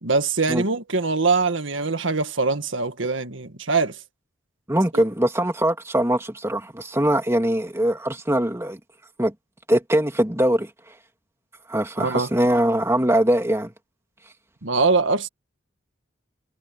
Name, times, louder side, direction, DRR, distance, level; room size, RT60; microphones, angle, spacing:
voice 1, 0.0-4.0 4.9-5.0 12.0-12.3 14.6-15.3, right 4 dB, 70° right, 1.8 m, -23 dB
voice 2, 4.7-8.8 9.2-9.3 9.7-10.7 11.7-13.7, right 1 dB, 15° right, 2.4 m, -22 dB
head